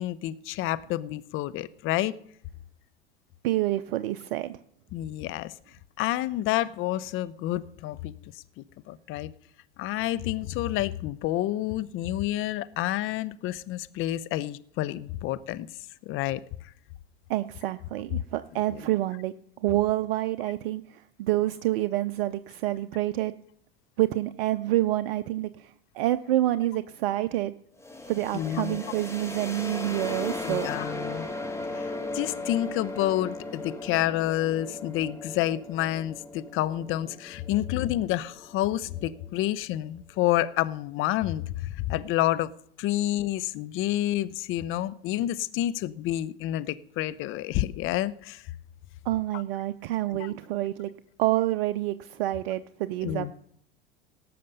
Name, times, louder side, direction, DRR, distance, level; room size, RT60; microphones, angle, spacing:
voice 1, 0.0-2.1 4.9-5.5 6.0-9.3 9.8-15.7 16.0-16.4 18.7-18.8 28.3-28.8 30.4-31.3 31.7-42.5 42.8-48.4 49.3-49.4 50.1-50.4 53.0-53.3, left 14 dB, 45° left, 0.7 m, -29 dB
voice 2, 3.4-4.6 17.3-19.3 19.6-23.3 24.0-27.5 28.1-30.7 49.0-50.9 51.2-53.3, right 15 dB, 60° right, 0.6 m, -28 dB
sound 1, 27.8-39.5, left 2 dB, 10° left, 1.8 m, -37 dB
18.0 x 6.8 x 5.4 m
hypercardioid pair, 80°, 30 cm